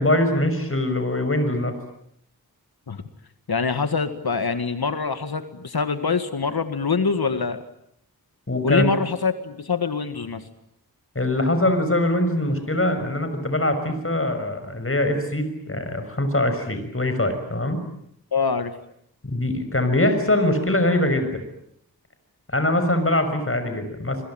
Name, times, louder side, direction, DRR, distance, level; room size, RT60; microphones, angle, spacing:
voice 1, 0.0-1.8 8.5-8.8 11.1-17.8 19.2-21.4 22.5-24.2, left 1 dB, 35° left, 8 dB, 6.4 m, -22 dB
voice 2, 3.5-7.6 8.6-10.5 18.3-18.7, left 5 dB, 75° left, 9 dB, 2.0 m, -24 dB
28.0 x 23.0 x 9.0 m, 0.74 s
wide cardioid pair, 65°, 37 cm